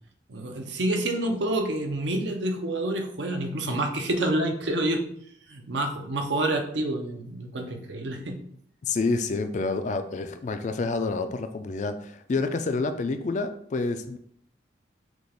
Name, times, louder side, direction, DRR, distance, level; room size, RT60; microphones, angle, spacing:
voice 1, 0.3-5.0 5.5-8.4, right 1 dB, 75° right, 4 dB, 0.7 m, -28 dB
voice 2, 8.8-14.2, left 3 dB, 40° left, 9 dB, 0.3 m, -28 dB
6.1 x 2.4 x 3.4 m, 0.67 s
head